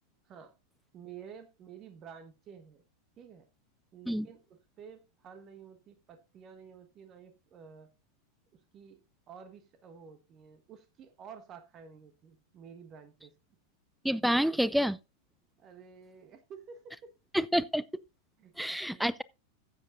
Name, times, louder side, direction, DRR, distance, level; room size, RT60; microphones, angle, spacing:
voice 1, 0.9-2.8 3.2-3.5 3.9-7.9 8.7-9.0 9.3-13.3 14.5-14.6 15.6-17.1 18.4-19.1, right 7 dB, 30° right, 1.4 m, -51 dB
voice 2, 14.0-15.0 17.3-17.8 18.6-19.2, equal, ahead, 0.4 m, -28 dB
15.0 x 7.8 x 2.5 m
figure-of-eight pair, 90°, 0 cm